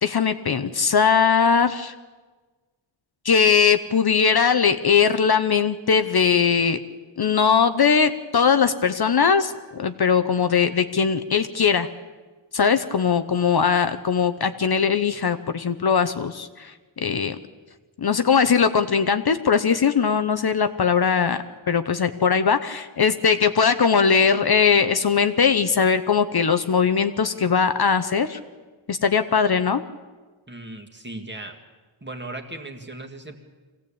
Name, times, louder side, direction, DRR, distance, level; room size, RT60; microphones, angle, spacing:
voice 1, 0.0-1.9 3.2-6.8 7.2-11.9 12.5-16.7 17.0-17.4 18.0-21.4 21.7-28.4 28.9-29.8, left 6 dB, 50° left, 9 dB, 0.9 m, -20 dB
voice 2, 30.5-31.6 32.0-33.4, right 2 dB, 20° right, 3 dB, 2.1 m, -37 dB
24.0 x 16.5 x 8.6 m, 1.3 s
wide cardioid pair, 140°, 49 cm